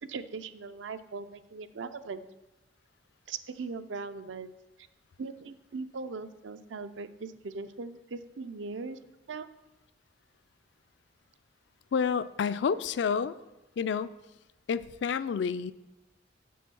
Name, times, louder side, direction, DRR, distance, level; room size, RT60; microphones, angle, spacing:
voice 1, 0.0-2.2 3.3-4.5 5.2-9.0 9.3-9.5, right 4 dB, 75° right, 11 dB, 0.5 m, -39 dB
voice 2, 11.9-13.3 13.8-14.1 14.7-15.7, left 6 dB, 65° left, 14 dB, 0.3 m, -29 dB
7.1 x 6.3 x 6.1 m, 1.0 s
head